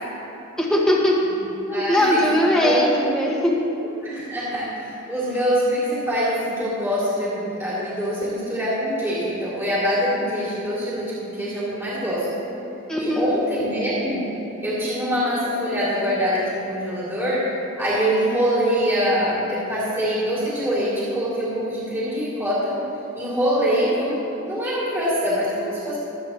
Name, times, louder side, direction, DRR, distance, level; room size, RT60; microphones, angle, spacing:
voice 1, 0.6-1.2 1.7-3.5 12.9-13.2, left 1 dB, 5° left, -5 dB, 1.8 m, -20 dB
voice 2, 1.4-2.3 2.5-2.8 4.0-12.3 13.0-14.3 14.6-17.5 17.8-22.7 23.1-26.0, equal, 10° right, -9 dB, 3.1 m, -24 dB
24.5 x 8.8 x 3.1 m, 2.9 s
head